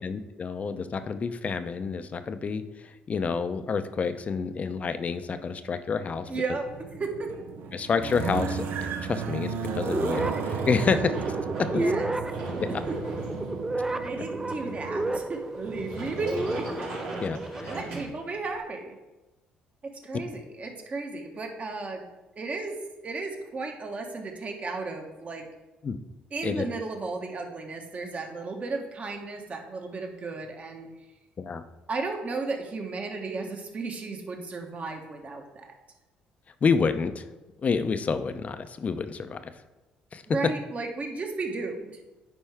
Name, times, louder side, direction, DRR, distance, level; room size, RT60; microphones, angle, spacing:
voice 1, 0.0-6.3 7.7-11.1 11.6-11.7 12.6-12.7 17.2-17.8 25.8-26.0 26.4-26.6 31.4-31.6 36.6-37.2 37.6-39.4 40.1-40.2, left 5 dB, 40° left, 10 dB, 0.6 m, -28 dB
voice 2, 6.3-6.6 7.0-7.3 11.7-12.1 12.9-13.0 13.9-16.7 17.7-19.0 20.0-22.1 22.4-22.8 23.0-25.4 26.3-30.9 31.9-35.7 40.3-41.9, right 3 dB, 40° right, 3 dB, 1.4 m, -34 dB
sound 1, 6.7-15.2, right 5 dB, 70° right, 0.7 m, -34 dB
sound 2, 9.8-17.8, right 2 dB, 15° right, 0.4 m, -32 dB
Sliding door, 11.1-18.6, right 1 dB, 90° right, 2.7 m, -39 dB
9.9 x 4.4 x 3.6 m, 1.1 s
supercardioid pair, 75°, 4 cm